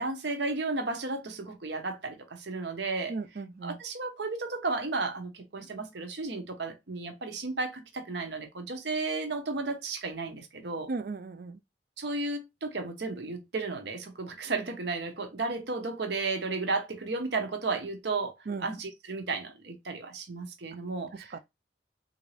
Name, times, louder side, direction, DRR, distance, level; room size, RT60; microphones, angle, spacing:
voice 1, 0.0-3.1 3.6-10.9 12.0-18.3 18.6-21.3, right 3 dB, 65° right, 0.8 m, -33 dB
voice 2, 3.1-3.8 10.9-11.6 18.5-18.7 21.1-21.4, right 3 dB, 50° right, 0.4 m, -36 dB
3.6 x 2.6 x 3.2 m
head